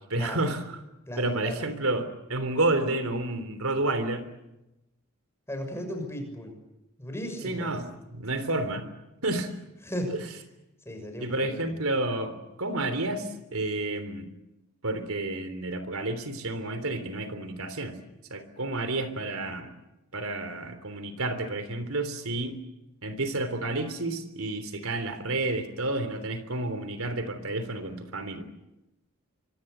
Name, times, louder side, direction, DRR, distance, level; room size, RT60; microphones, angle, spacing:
voice 1, 0.1-0.6 1.2-4.3 7.4-8.9 9.2-9.5 10.1-10.2 11.2-14.3 14.8-18.0 18.3-19.7 20.1-22.6 23.0-28.5, right 2 dB, 80° right, 10 dB, 3.3 m, -30 dB
voice 2, 1.1-1.6 5.5-6.5 7.0-7.7 9.8-10.1 10.8-11.7, equal, 10° left, 4 dB, 6.6 m, -35 dB
25.5 x 24.0 x 8.0 m, 0.94 s
head